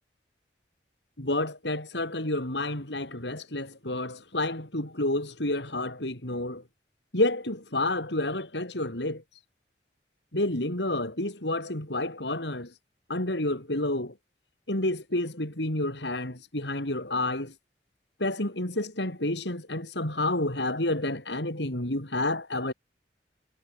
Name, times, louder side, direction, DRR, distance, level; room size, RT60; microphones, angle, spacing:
voice 1, 1.2-6.6 7.1-9.2 10.3-12.7 13.1-14.1 14.7-17.5 18.2-22.7, left 1 dB, 75° left, 5.7 m, -29 dB
head